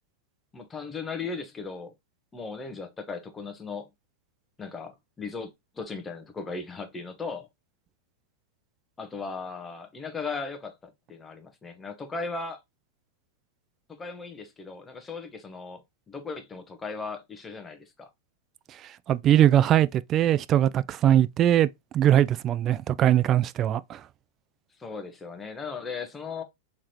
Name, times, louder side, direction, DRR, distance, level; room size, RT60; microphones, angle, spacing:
voice 1, 0.5-1.9 2.3-3.9 4.6-7.5 9.0-12.6 13.9-18.1 24.8-26.4, left 4 dB, 15° left, 0.9 m, -37 dB
voice 2, 19.1-21.7 21.9-24.0, right 11 dB, 35° right, 0.3 m, -21 dB
3.7 x 3.2 x 2.8 m
hypercardioid pair, 105°, 0 cm